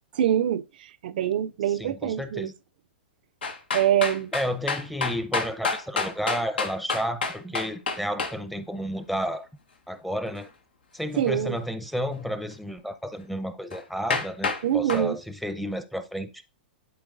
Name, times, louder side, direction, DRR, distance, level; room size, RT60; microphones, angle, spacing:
voice 1, 0.1-2.5 3.7-4.3 11.2-11.6 14.6-15.2, right 11 dB, 65° right, 0.4 m, -25 dB
voice 2, 1.8-2.5 4.3-9.5 9.9-10.5 10.9-16.3, equal, ahead, 0.7 m, -31 dB
sound 1, 3.4-8.3 13.7-13.8 14.1-14.6 14.9-15.1, left 4 dB, 85° left, 1.3 m, -28 dB
11.0 x 4.5 x 2.5 m
hypercardioid pair, 120°, 5 cm